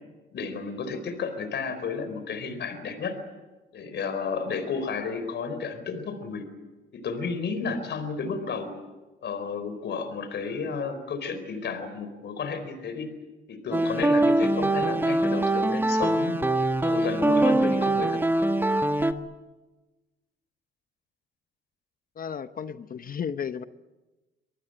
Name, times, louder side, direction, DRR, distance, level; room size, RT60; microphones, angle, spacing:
voice 1, 0.3-3.1 3.7-6.4 6.9-8.7 9.2-13.1 13.5-16.4 16.8-18.5, left 5 dB, 60° left, 10 dB, 4.3 m, -32 dB
sound 1, 13.7-19.1, right 1 dB, 10° right, 1.5 m, -23 dB
voice 2, 22.2-23.6, left 7 dB, 45° left, 12 dB, 0.9 m, -33 dB
25.5 x 20.0 x 9.0 m, 1.2 s
cardioid pair, 90°, 20 cm